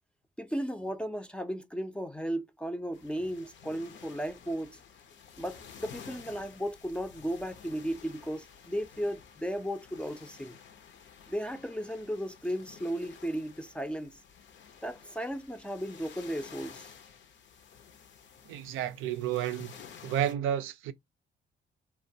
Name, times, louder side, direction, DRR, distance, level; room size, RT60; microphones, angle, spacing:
voice 1, 0.4-4.8 5.4-10.6 11.3-14.2 14.8-16.9, equal, 5° left, 0.4 m, -35 dB
sound 1, 2.9-20.3, left 7 dB, 65° left, 0.6 m, -52 dB
voice 2, 18.5-19.7 20.0-20.9, right 10 dB, 85° right, 0.4 m, -31 dB
2.8 x 2.2 x 2.6 m
cardioid pair, 90°, 20 cm